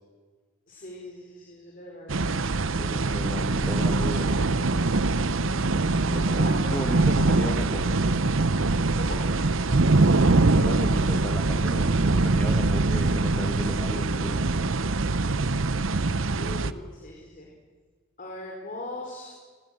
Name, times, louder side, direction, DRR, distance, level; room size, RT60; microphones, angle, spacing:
voice 1, 0.7-2.5 2.8-3.1 6.0-7.2 9.0-9.2 16.4-17.5 18.2-19.3, left 1 dB, 40° left, -1 dB, 4.8 m, -40 dB
sound 1, 2.1-16.7, right 3 dB, 65° right, 0.9 m, -23 dB
voice 2, 2.8-4.5 6.1-7.9 10.1-14.5, equal, 10° left, 4 dB, 1.7 m, -36 dB
29.5 x 21.5 x 7.8 m, 1.5 s
head